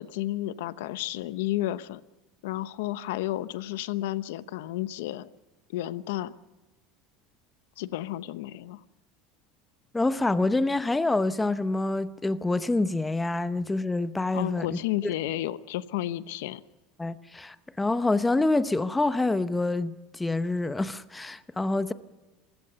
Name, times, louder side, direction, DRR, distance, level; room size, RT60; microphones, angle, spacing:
voice 1, 0.0-2.0 2.4-5.3 5.7-6.3 7.8-8.8 14.3-16.6, left 14 dB, 85° left, 0.9 m, -32 dB
voice 2, 9.9-14.8 17.0-21.9, left 2 dB, 10° left, 0.8 m, -26 dB
26.5 x 16.0 x 6.9 m
supercardioid pair, 130°, 0 cm